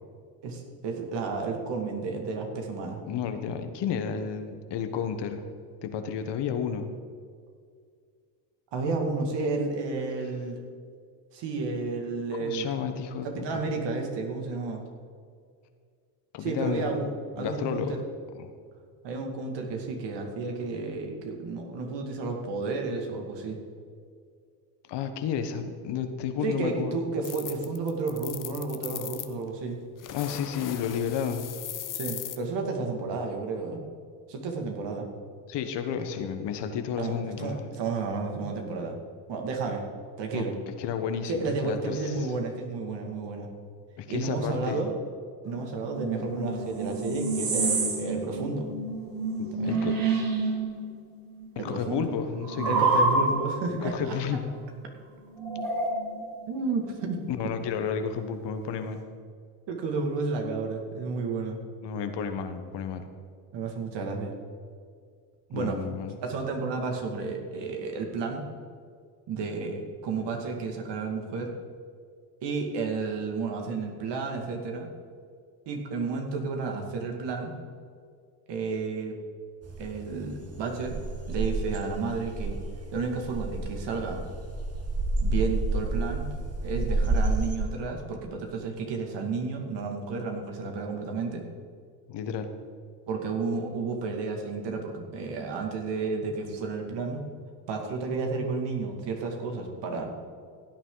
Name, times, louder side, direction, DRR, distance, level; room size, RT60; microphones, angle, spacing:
voice 1, 0.4-3.0 8.7-10.6 11.3-12.7 13.2-14.8 16.4-17.1 17.4-18.0 19.0-23.6 26.4-29.8 31.9-33.8 34.3-35.1 37.0-39.0 39.3-39.8 40.2-40.6 41.3-43.5 44.1-44.9 45.5-48.7 49.5-49.8 51.6-52.1 52.6-54.4 56.5-57.2 59.7-61.6 63.5-64.3 65.5-65.8 66.2-68.5 69.3-71.5 72.4-74.9 75.7-77.6 78.5-79.2 79.8-81.0 81.3-82.6 82.9-84.2 85.2-86.3 86.6-91.4 93.1-97.3 97.7-100.1, right 4 dB, 65° right, 2 dB, 2.3 m, -32 dB
voice 2, 3.0-5.4 5.8-6.9 12.4-13.6 16.3-17.1 17.4-18.0 18.4-18.5 24.9-27.0 30.1-31.5 35.5-37.6 40.3-40.5 40.8-42.3 44.0-44.8 49.4-50.0 51.5-52.8 53.8-54.5 57.3-59.0 61.8-63.1 65.5-66.2 92.1-92.5, left 7 dB, 60° left, 8 dB, 1.3 m, -32 dB
sound 1, 27.2-29.3 30.0-32.4, left 10 dB, 45° left, 0.9 m, -38 dB
sound 2, 45.5-51.0 51.3-53.7 55.4-56.4, right 3 dB, 45° right, 2.6 m, -28 dB
sound 3, 79.6-87.6, right 2 dB, 30° right, 1.7 m, -30 dB
16.0 x 9.1 x 4.0 m, 2.1 s
supercardioid pair, 85°, 46 cm